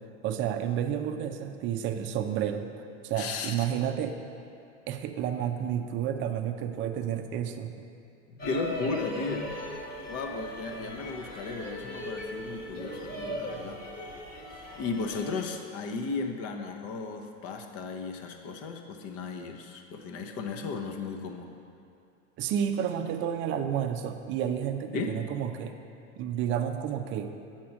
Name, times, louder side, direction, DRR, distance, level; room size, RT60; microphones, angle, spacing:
voice 1, 0.2-4.2 4.9-7.7 22.4-25.8 26.2-27.3, right 9 dB, 35° right, 7 dB, 0.5 m, -31 dB
voice 2, 3.2-3.5 8.4-9.5 10.0-13.8 14.7-21.6 24.9-25.3, left 4 dB, 40° left, 4 dB, 0.8 m, -35 dB
sound 1, 8.4-15.3, equal, 25° left, 1.2 m, -39 dB
7.3 x 4.4 x 5.8 m, 2.5 s
supercardioid pair, 120°, 35 cm